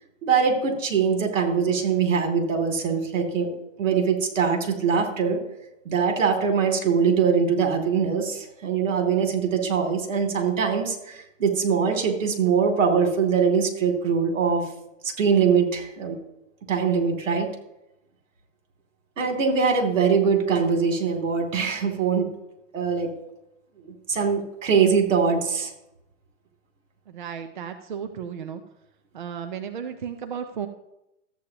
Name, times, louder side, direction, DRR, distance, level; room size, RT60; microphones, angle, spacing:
voice 1, 0.2-5.4 5.8-14.7 15.0-16.2 16.7-17.5 19.2-22.3 22.7-23.1 23.8-25.7, right 6 dB, 75° right, 4 dB, 2.8 m, -22 dB
voice 2, 27.1-28.6 29.1-30.7, right 7 dB, 40° right, 6 dB, 0.6 m, -34 dB
14.0 x 8.5 x 2.9 m, 0.87 s
hypercardioid pair, 175°, 38 cm